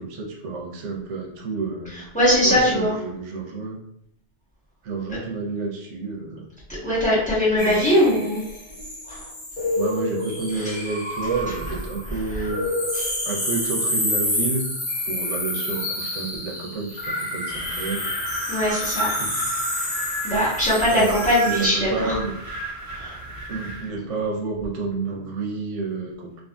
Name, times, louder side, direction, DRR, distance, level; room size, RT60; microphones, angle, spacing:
voice 1, 0.0-2.0 2.4-3.8 4.8-6.5 7.5-8.2 9.7-12.7 13.3-14.7 15.0-18.1 19.2-19.5 20.9-21.1 21.5-22.3 23.5-26.4, right 3 dB, 85° right, 0 dB, 0.9 m, -30 dB
voice 2, 2.1-2.9 6.8-8.4 9.1-9.2 10.6-10.7 12.3-12.4 18.5-19.1 20.2-22.2 22.9-23.1, equal, 5° left, -10 dB, 1.1 m, -21 dB
sound 1, 7.6-21.7, left 1 dB, 90° left, 1.3 m, -29 dB
Wind, 17.5-23.9, right 1 dB, 45° right, 0.4 m, -32 dB
2.7 x 2.5 x 2.2 m, 0.75 s
omnidirectional pair, 1.2 m